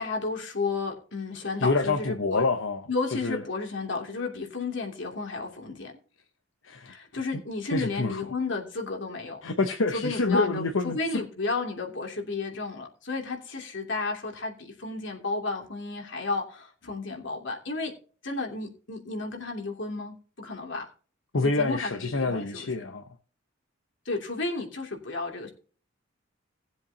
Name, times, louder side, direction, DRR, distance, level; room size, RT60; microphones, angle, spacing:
voice 1, 0.0-2.4 2.9-5.9 6.9-9.4 9.9-17.9 18.2-20.9 21.4-22.7 24.0-25.5, left 3 dB, 65° left, 2.8 m, -32 dB
voice 2, 1.6-2.9 3.2-3.4 6.6-7.0 7.7-8.2 9.4-11.2 21.3-23.0, left 3 dB, 85° left, 0.9 m, -27 dB
18.5 x 7.8 x 2.9 m
head